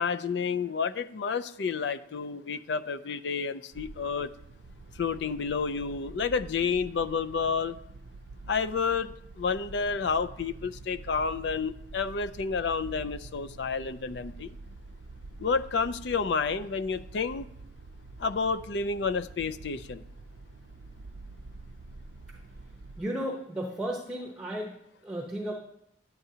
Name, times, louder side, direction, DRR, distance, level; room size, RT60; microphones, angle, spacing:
voice 1, 0.0-4.3 4.9-7.8 8.5-14.5 15.4-17.5 18.2-20.0, left 5 dB, 65° left, 13 dB, 0.4 m, -30 dB
sound 1, 3.7-23.0, right 2 dB, 85° right, 0.5 m, -47 dB
voice 2, 23.0-24.7 25.0-25.5, equal, 5° right, -2 dB, 0.8 m, -34 dB
10.5 x 8.9 x 2.8 m, 0.75 s
head